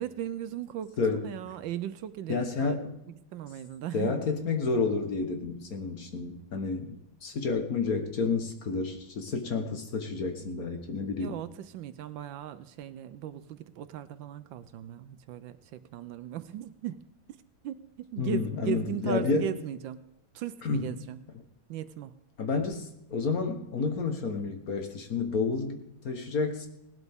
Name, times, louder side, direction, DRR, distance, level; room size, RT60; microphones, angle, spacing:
voice 1, 0.0-1.0 1.2-2.8 3.3-4.2 11.2-17.0 17.6-17.8 18.1-20.0 20.3-21.2 21.7-22.1, right 11 dB, 75° right, 13 dB, 1.2 m, -37 dB
voice 2, 2.3-2.9 3.9-11.4 18.2-19.5 20.6-20.9 22.4-26.7, left 4 dB, 50° left, 6 dB, 1.5 m, -30 dB
18.0 x 12.0 x 3.6 m, 0.86 s
omnidirectional pair, 2.2 m